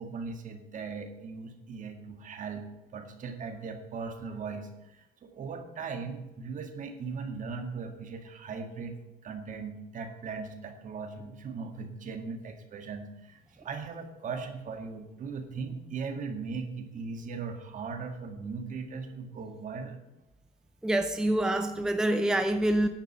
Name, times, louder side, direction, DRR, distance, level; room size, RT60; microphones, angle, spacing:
voice 1, 0.0-2.6 2.9-9.0 9.2-20.0, right 5 dB, 50° right, 6 dB, 1.8 m, -38 dB
voice 2, 20.8-22.9, right 1 dB, 5° right, 7 dB, 0.6 m, -26 dB
10.5 x 5.2 x 7.7 m, 0.99 s
cardioid pair, 110°, 17 cm